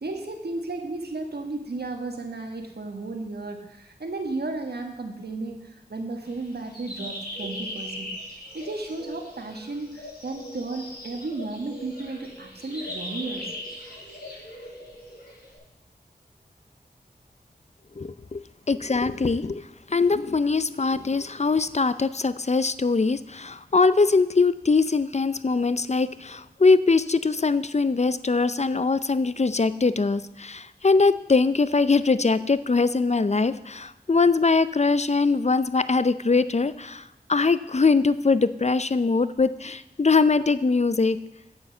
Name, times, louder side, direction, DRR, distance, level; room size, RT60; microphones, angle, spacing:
voice 1, 0.0-8.1 8.5-13.5, right 2 dB, 75° right, 4 dB, 1.6 m, -34 dB
sound 1, 6.3-15.6, left 1 dB, 65° left, 5.0 m, -39 dB
voice 2, 18.0-18.4 18.7-19.6 19.9-37.0 37.3-41.2, left 4 dB, 40° left, 15 dB, 0.6 m, -22 dB
9.7 x 7.8 x 7.2 m, 0.92 s
wide cardioid pair, 45°, 17 cm